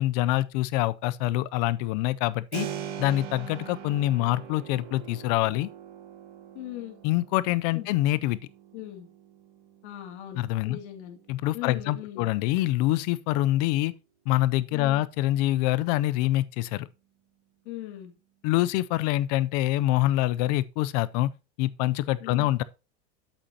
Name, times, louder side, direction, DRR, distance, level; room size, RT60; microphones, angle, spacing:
voice 1, 0.0-2.7 3.0-5.7 7.0-8.4 10.4-10.8 11.3-13.9 14.3-16.9 18.4-21.3 21.6-22.6, left 16 dB, 40° left, 0.4 m, -25 dB
Keyboard (musical), 2.5-13.2, right 9 dB, 45° right, 1.2 m, -43 dB
voice 2, 6.5-7.0 7.7-7.9 8.7-9.1 9.8-11.2 11.5-12.3 14.7-15.1 17.6-18.1 22.2-22.5, left 13 dB, 75° left, 2.5 m, -39 dB
8.5 x 7.9 x 2.7 m
supercardioid pair, 165°, 35 cm